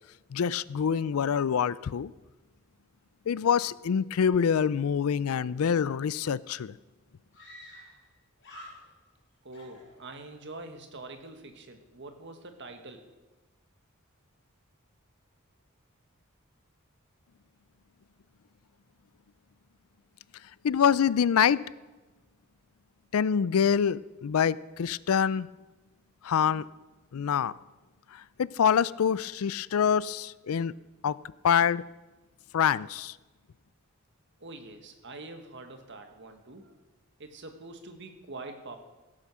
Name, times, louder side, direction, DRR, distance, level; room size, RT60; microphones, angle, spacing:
voice 1, 0.3-2.1 3.3-6.7 20.6-21.6 23.1-25.5 26.2-26.7 27.1-27.5 28.1-30.7 31.0-31.2 31.4-31.8 32.5-33.1, left 7 dB, 80° left, 20 dB, 0.4 m, -25 dB
Screaming, 6.2-6.3 6.5-6.6 7.3-8.1 8.4-9.2 9.5-10.4, left 1 dB, 60° left, 4.9 m, -50 dB
voice 2, 9.4-13.1 34.4-36.7 37.2-38.8, right 2 dB, 55° right, 6 dB, 1.6 m, -45 dB
16.0 x 8.9 x 6.2 m, 1.2 s
head